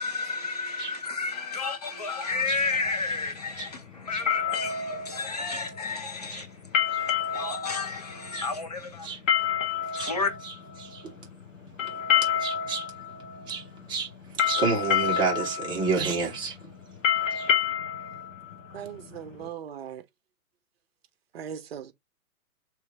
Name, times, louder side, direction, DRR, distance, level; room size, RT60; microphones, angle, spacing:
voice 1, 0.0-6.5 7.0-9.1 10.0-10.3, left 4 dB, 30° left, 0.4 m, -31 dB
sound 1, 2.3-19.5, left 8 dB, 55° left, 1.1 m, -30 dB
voice 2, 12.4-12.9 13.5-13.6 13.9-14.1 14.4-16.5 17.3-17.5, right 4 dB, 10° right, 1.0 m, -29 dB
voice 3, 18.7-20.0 21.3-21.9, right 8 dB, 40° right, 0.7 m, -39 dB
3.1 x 3.1 x 3.7 m
figure-of-eight pair, 125°, 46 cm